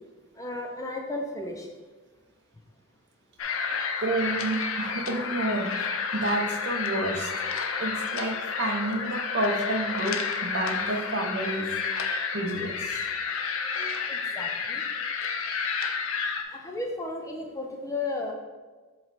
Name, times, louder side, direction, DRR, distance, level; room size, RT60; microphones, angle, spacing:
voice 1, 0.4-1.7 14.1-14.8 16.5-18.3, left 2 dB, 15° left, 1 dB, 0.5 m, -34 dB
sound 1, 3.4-16.4, left 5 dB, 70° left, 0.6 m, -30 dB
voice 2, 4.0-5.7 6.1-7.3 7.8-11.7 12.3-13.1 13.7-14.0, right 2 dB, 50° right, 4 dB, 0.7 m, -30 dB
7.4 x 3.1 x 4.1 m, 1.3 s
head